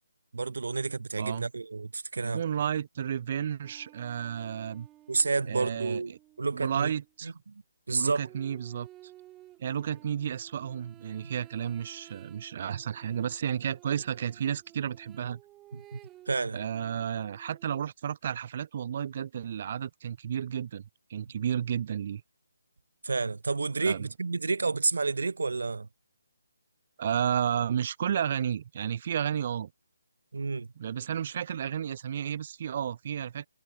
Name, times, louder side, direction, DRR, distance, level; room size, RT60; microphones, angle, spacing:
voice 1, 0.3-2.4 5.1-6.1 6.4-6.9 7.2-7.6 7.9-8.3 15.7-16.0 16.3-16.6 23.0-25.9 30.3-30.7, right 4 dB, 75° right, 1.6 m, -30 dB
voice 2, 2.3-4.9 5.5-6.2 6.5-7.3 7.9-8.9 9.6-15.4 16.5-22.2 23.8-24.1 27.0-29.7 30.8-33.5, right 9 dB, 40° right, 0.6 m, -32 dB
sound 1, 3.6-7.1 8.2-17.8, right 15 dB, 15° right, 1.8 m, -55 dB
figure-of-eight pair, 155°, 0 cm